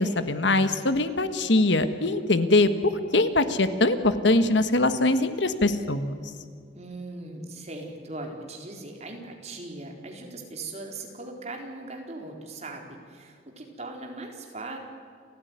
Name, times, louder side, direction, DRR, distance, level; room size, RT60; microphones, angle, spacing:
voice 1, 0.0-2.7 3.1-6.1, left 2 dB, 70° left, 11 dB, 1.5 m, -22 dB
voice 2, 6.7-14.8, right 2 dB, 35° right, 2 dB, 4.1 m, -39 dB
29.5 x 15.0 x 9.6 m, 2.2 s
head